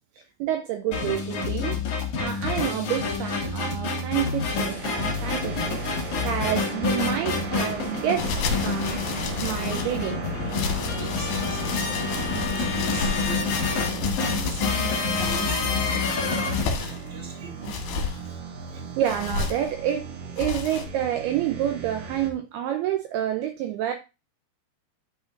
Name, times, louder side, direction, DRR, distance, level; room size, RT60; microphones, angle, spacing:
voice 1, 0.4-1.8 2.2-8.3 8.6-9.0 9.4-10.2 18.7-20.1 20.4-23.9, right 11 dB, 85° right, 2.2 m, -28 dB
sound 1, 0.9-16.6, left 4 dB, 50° left, 2.9 m, -28 dB
sound 2, 3.8-22.3, right 6 dB, 70° right, 2.1 m, -37 dB
sound 3, 8.2-10.0 10.5-15.6 16.3-17.1 17.6-18.2 19.0-19.7 20.4-20.9, left 5 dB, 65° left, 3.0 m, -31 dB
voice 2, 10.7-17.8 18.2-18.4, right 1 dB, 5° right, 1.4 m, -40 dB
12.0 x 5.2 x 2.5 m
omnidirectional pair, 5.3 m